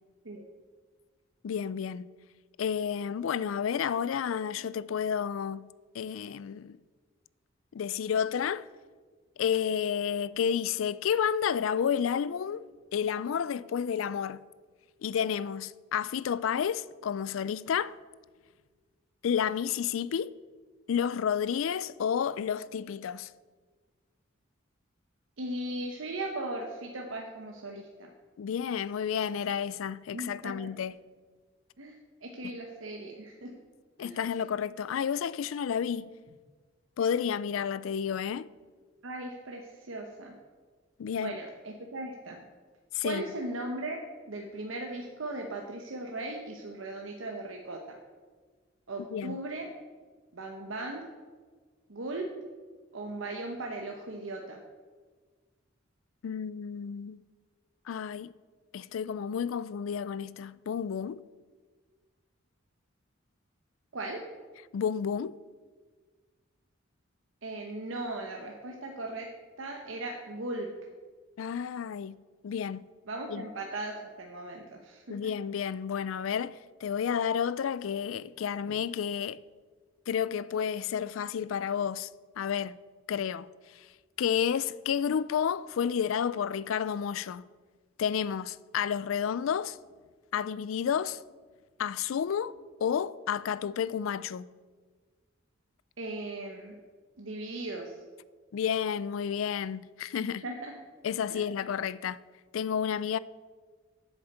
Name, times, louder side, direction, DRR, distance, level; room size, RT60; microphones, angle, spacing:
voice 1, 1.4-2.1 2.6-5.7 5.9-6.8 7.7-8.7 9.4-14.4 15.0-18.0 19.2-20.3 20.9-23.3 28.4-31.0 32.4-32.6 34.0-36.1 37.0-38.5 41.0-41.4 42.9-43.3 49.1-49.4 56.2-57.2 57.9-58.3 58.7-61.2 64.7-65.4 71.4-72.9 73.3-73.5 75.1-79.4 80.1-82.1 82.4-82.8 83.1-83.5 83.7-83.9 84.2-87.4 88.0-89.8 90.3-91.2 91.8-94.5 98.5-100.5 101.0-102.2 102.5-103.2, left 8 dB, 85° left, 0.4 m, -31 dB
voice 2, 25.4-28.1 30.1-30.5 31.8-31.9 32.2-33.5 34.0-34.2 39.0-40.3 41.2-42.4 43.0-44.0 44.3-47.8 48.9-49.7 50.3-51.0 51.9-52.3 52.9-54.6 63.9-64.2 67.4-69.3 69.6-70.7 73.1-75.1 96.0-96.7 97.2-97.9 100.2-100.7 101.3-101.4, right 2 dB, 80° right, 1.0 m, -38 dB
7.9 x 7.1 x 7.8 m
head